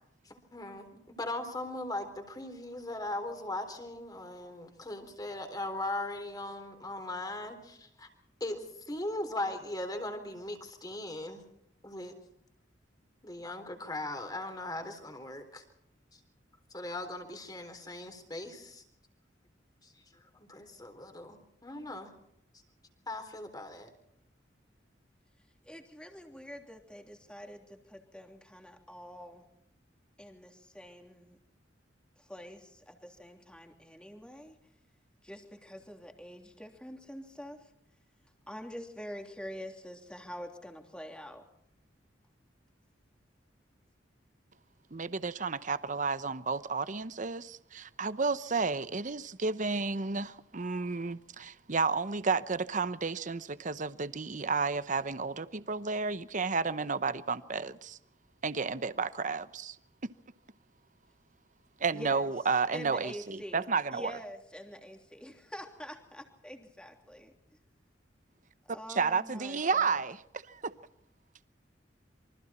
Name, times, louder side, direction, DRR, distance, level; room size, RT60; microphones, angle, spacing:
voice 1, 0.2-8.1 8.4-11.4 11.8-12.1 13.2-15.6 16.1-16.2 16.7-18.8 19.8-22.1 23.1-23.9, left 2 dB, 20° left, 3.9 m, -39 dB
voice 2, 25.6-29.5 30.2-31.4 32.2-34.6 35.2-37.7 38.5-41.4 61.9-62.3 62.7-67.3 68.6-70.0, equal, 5° left, 3.1 m, -46 dB
voice 3, 44.9-58.0 58.4-59.8 60.0-60.1 61.8-64.1 68.9-70.2 70.5-70.7, right 4 dB, 45° right, 0.9 m, -32 dB
27.5 x 24.5 x 4.4 m
head